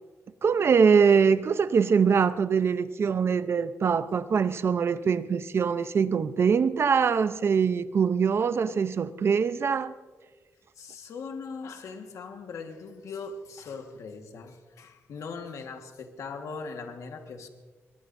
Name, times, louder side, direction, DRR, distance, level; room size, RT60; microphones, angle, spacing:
voice 1, 0.4-9.9, right 6 dB, 55° right, 0.7 m, -23 dB
voice 2, 10.8-17.5, left 4 dB, 85° left, 1.6 m, -40 dB
22.5 x 22.0 x 2.7 m
cardioid pair, 105°, 5 cm